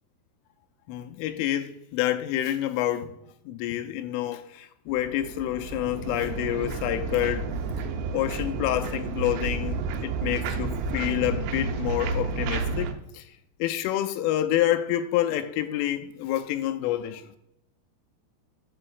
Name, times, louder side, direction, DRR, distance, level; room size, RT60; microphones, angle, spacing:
voice 1, 0.9-3.2 3.5-7.4 8.1-13.3 13.6-17.3, left 13 dB, 85° left, 2.9 m, -28 dB
sound 1, 4.9-12.9, right 4 dB, 85° right, 3.5 m, -31 dB
11.5 x 8.7 x 2.4 m
omnidirectional pair, 5.9 m